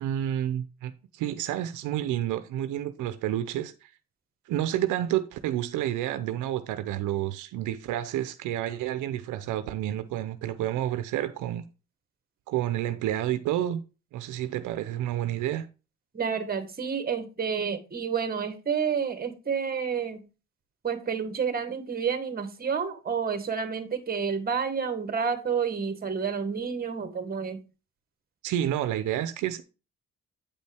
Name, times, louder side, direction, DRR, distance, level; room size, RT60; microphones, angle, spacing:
voice 1, 0.0-3.9 4.5-11.6 12.5-13.8 14.1-15.7 28.4-29.6, right 12 dB, 90° right, 0.6 m, -29 dB
voice 2, 16.1-20.2 20.8-27.6, right 6 dB, 30° right, 1.4 m, -29 dB
8.5 x 5.3 x 3.4 m
cardioid pair, 90°, 30 cm